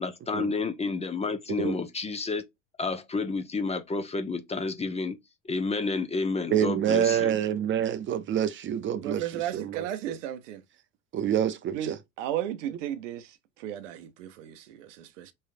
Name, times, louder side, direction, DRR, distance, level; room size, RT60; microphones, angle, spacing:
voice 1, 0.0-2.4 2.8-5.2 5.5-7.3, left 4 dB, 15° left, 0.7 m, -30 dB
voice 2, 6.5-10.2 11.1-12.0, right 10 dB, 30° right, 0.6 m, -27 dB
voice 3, 9.0-10.6 11.7-13.3 13.6-15.3, right 11 dB, 70° right, 0.8 m, -34 dB
4.6 x 3.2 x 2.5 m
hypercardioid pair, 80°, 38 cm